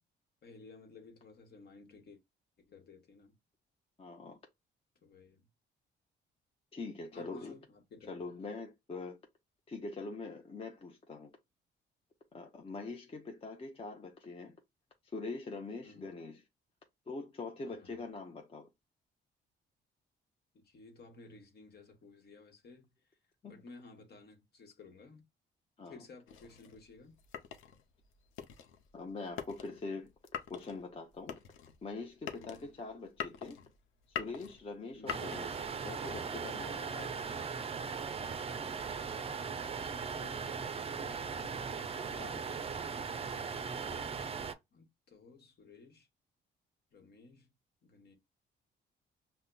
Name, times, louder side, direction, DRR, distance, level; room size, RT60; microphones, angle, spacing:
voice 1, 0.4-2.2 2.7-3.3 5.0-5.5 7.1-8.2 15.8-16.1 17.6-18.0 20.5-22.9 23.4-25.2 25.8-27.1 32.3-32.7 34.9-35.4 39.8-40.5 40.8-41.8 44.7-46.1 46.9-47.5 47.8-48.2, left 3 dB, 55° left, 1.1 m, -55 dB
voice 2, 4.0-4.4 6.7-7.5 8.1-9.2 9.7-11.3 12.3-14.6 15.0-16.4 17.1-18.7 23.4-23.6 25.8-26.0 28.9-30.1 30.5-31.4 31.8-33.6 34.1-37.1 42.2-42.4, left 3 dB, 30° left, 0.6 m, -43 dB
sound 1, 26.3-35.9, left 8 dB, 90° left, 0.6 m, -45 dB
sound 2, 35.1-44.5, right 5 dB, 30° right, 0.4 m, -39 dB
5.5 x 2.1 x 2.2 m
cardioid pair, 90°, 20 cm